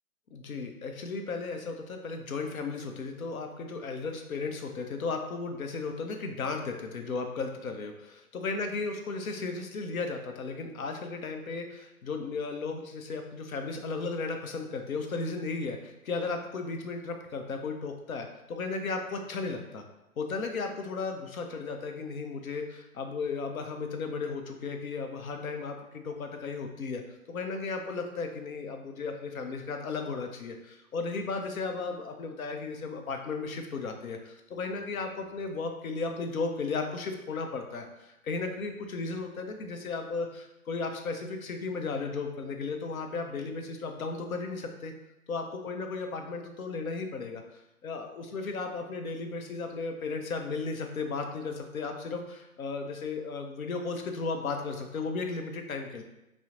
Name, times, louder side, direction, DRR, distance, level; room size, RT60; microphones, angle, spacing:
voice 1, 0.3-19.8 20.2-27.0 27.3-44.9 45.3-56.0, left 4 dB, 65° left, 4 dB, 0.6 m, -35 dB
3.6 x 2.1 x 2.9 m, 0.94 s
figure-of-eight pair, 140°, 45 cm